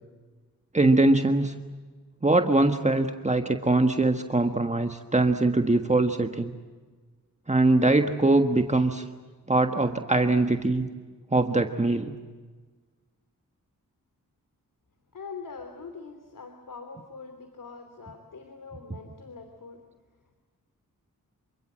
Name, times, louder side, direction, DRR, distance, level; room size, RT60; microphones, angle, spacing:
voice 1, 0.7-1.5 2.2-6.5 7.5-9.0 9.5-10.8 11.3-12.1, right 2 dB, 20° right, 6 dB, 1.5 m, -22 dB
voice 2, 15.1-19.8, left 4 dB, 70° left, 6 dB, 3.2 m, -43 dB
27.5 x 25.5 x 7.6 m, 1.4 s
wide cardioid pair, 75°, 34 cm